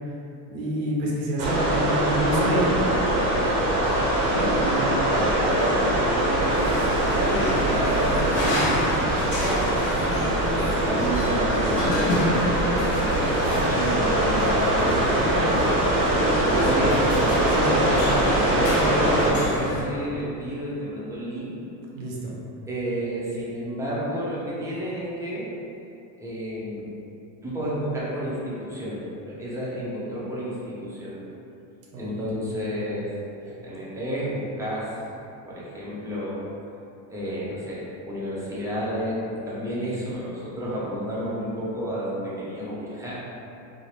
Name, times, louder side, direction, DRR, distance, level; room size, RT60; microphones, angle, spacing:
voice 1, 0.5-2.8 17.5-18.0 18.7-19.3 21.9-22.4 31.9-32.4, right 1 dB, 85° right, -4 dB, 0.8 m, -28 dB
sound 1, 1.4-19.3, right 1 dB, 45° right, 0.7 m, -23 dB
Growling, 2.3-3.1 3.8-5.1 5.3-5.4 5.6-6.0 6.4-6.9 7.2-7.3 8.6-9.9 10.2-10.3 10.9-11.0 12.3-13.9 14.4-14.7 15.0-15.9 16.6-16.9 17.5-17.8 18.8-19.4, left 2 dB, 65° left, 0.6 m, -39 dB
voice 2, 4.5-8.6 8.8-9.3 10.4-12.4 13.4-17.0 17.6-21.6 22.7-25.5 26.2-26.8 27.4-31.2 32.0-33.1 33.5-34.9 35.5-36.4 37.1-43.2, equal, 5° right, -8 dB, 0.6 m, -31 dB
sound 2, 5.9-19.8, equal, 30° left, 0.7 m, -29 dB
2.6 x 2.0 x 3.1 m, 2.7 s
supercardioid pair, 100°, 49 cm